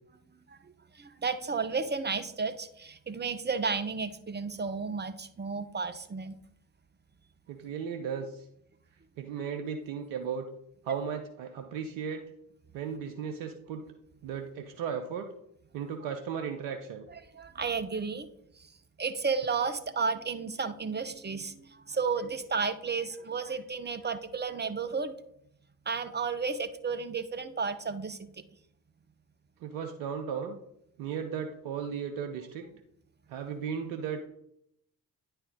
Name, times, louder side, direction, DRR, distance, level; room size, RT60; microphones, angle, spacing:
voice 1, 0.9-6.4 17.1-18.3 19.0-25.2 25.9-28.3, right 5 dB, 20° right, 10 dB, 0.8 m, -32 dB
voice 2, 7.5-8.5 9.2-10.5 10.8-12.2 12.7-13.8 14.2-15.3 15.7-17.1 29.6-30.6 31.0-32.6 33.3-34.2, right 7 dB, 70° right, 5 dB, 0.8 m, -35 dB
9.6 x 4.5 x 3.7 m, 0.74 s
hypercardioid pair, 40°, 46 cm